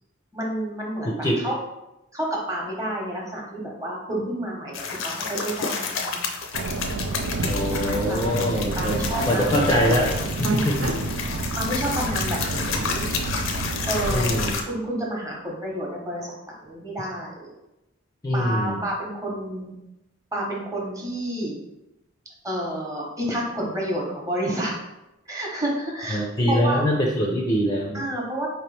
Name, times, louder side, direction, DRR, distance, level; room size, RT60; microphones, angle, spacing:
voice 1, 0.3-1.6 2.1-4.7 5.0-6.3 7.7-9.5 10.4-10.7 11.6-13.1 13.8-16.3 16.6-17.5 18.3-19.7 20.3-21.5 22.4-24.7 25.3-26.8 27.9-28.5, right 1 dB, 15° right, -3 dB, 1.0 m, -30 dB
voice 2, 1.0-1.4 7.4-10.1 10.4-10.8 14.1-14.6 18.2-18.8 26.1-28.0, equal, 20° left, -2 dB, 0.5 m, -23 dB
sound 1, 4.7-14.6, left 5 dB, 70° left, 0.6 m, -30 dB
Subway metro underground, 6.5-14.5, right 3 dB, 70° right, 0.4 m, -29 dB
4.6 x 2.9 x 3.3 m, 0.93 s
head